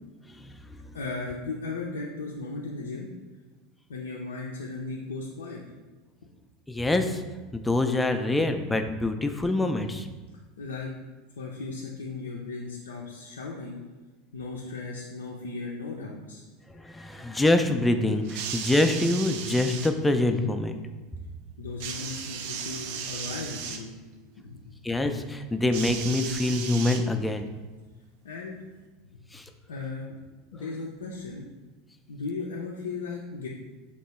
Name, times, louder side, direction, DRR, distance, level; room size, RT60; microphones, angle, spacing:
voice 1, 0.9-3.1 3.9-5.6 10.6-10.9 11.4-13.8 14.3-16.4 21.6-23.9 24.4-25.0 28.2-28.6 29.7-30.2 30.5-31.4 32.1-33.5, left 3 dB, 75° left, -3 dB, 0.4 m, -36 dB
voice 2, 6.7-7.2 7.5-10.1 16.8-20.8 24.8-27.5 29.3-29.4, left 2 dB, 10° left, 7 dB, 0.4 m, -25 dB
sound 1, 18.2-19.9 21.8-23.8 25.7-27.4 28.4-28.5, right 7 dB, 55° right, 0.4 m, -36 dB
3.5 x 2.9 x 4.2 m, 1.2 s
figure-of-eight pair, 75°, 0 cm